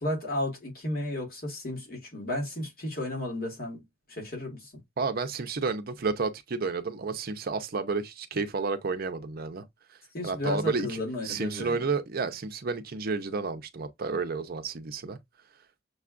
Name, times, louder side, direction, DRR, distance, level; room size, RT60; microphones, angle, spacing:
voice 1, 0.0-3.8 4.1-4.8 10.1-11.9, left 1 dB, 50° left, 1.7 m, -33 dB
voice 2, 5.0-9.6 10.2-11.0 11.2-15.2, right 4 dB, 50° right, 0.6 m, -31 dB
6.5 x 2.4 x 2.4 m
head